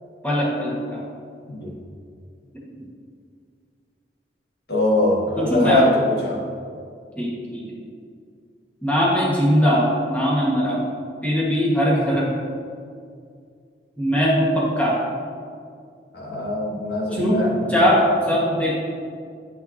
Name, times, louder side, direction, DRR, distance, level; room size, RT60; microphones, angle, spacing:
voice 1, 0.2-1.1 2.5-2.7 5.4-5.9 7.1-7.7 8.8-10.8 11.2-12.3 14.0-15.0 17.1-17.4 17.7-18.9, equal, 10° left, -6 dB, 1.6 m, -20 dB
voice 2, 4.7-5.9 6.2-6.4 16.1-17.9, left 1 dB, 60° left, -4 dB, 1.7 m, -22 dB
10.5 x 5.7 x 2.8 m, 2.3 s
head